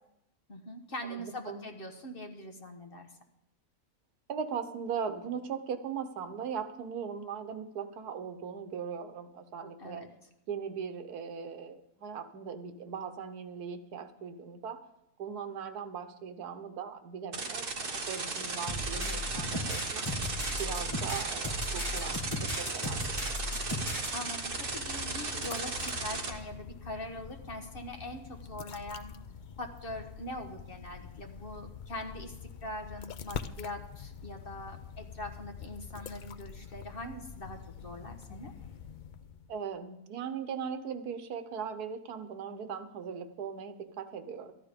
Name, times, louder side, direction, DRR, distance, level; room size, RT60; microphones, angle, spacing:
voice 1, 0.5-3.1 9.8-10.1 23.9-29.1 29.6-32.4 32.6-38.5, left 1 dB, 40° left, 4 dB, 1.3 m, -42 dB
voice 2, 1.1-1.7 4.3-10.1 10.5-14.8 15.2-20.1 20.6-23.4 38.3-38.5 39.5-44.5, right 7 dB, 85° right, 9 dB, 1.5 m, -39 dB
sound 1, 17.3-26.3, right 3 dB, 40° right, 1.4 m, -36 dB
sound 2, 18.7-24.1, left 1 dB, 20° left, 1.7 m, -36 dB
sound 3, 23.9-39.6, left 7 dB, 85° left, 0.4 m, -45 dB
13.5 x 12.0 x 5.1 m, 0.84 s
omnidirectional pair, 1.6 m